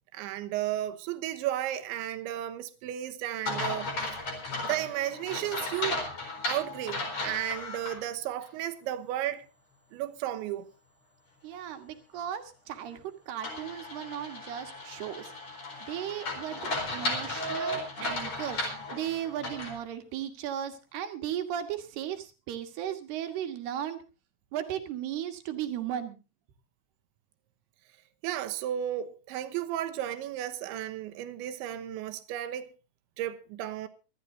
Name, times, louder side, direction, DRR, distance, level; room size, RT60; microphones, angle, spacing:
voice 1, 0.1-4.2 4.7-6.0 6.5-9.4 9.9-10.7 28.2-32.7 33.2-33.9, right 12 dB, 85° right, 3.4 m, -33 dB
sound 1, 3.5-8.0 8.4-8.5 13.4-19.8, left 2 dB, 35° left, 5.0 m, -35 dB
voice 2, 11.4-15.3 15.8-24.0 24.5-26.2, right 10 dB, 65° right, 3.3 m, -36 dB
25.0 x 13.0 x 2.7 m
omnidirectional pair, 5.3 m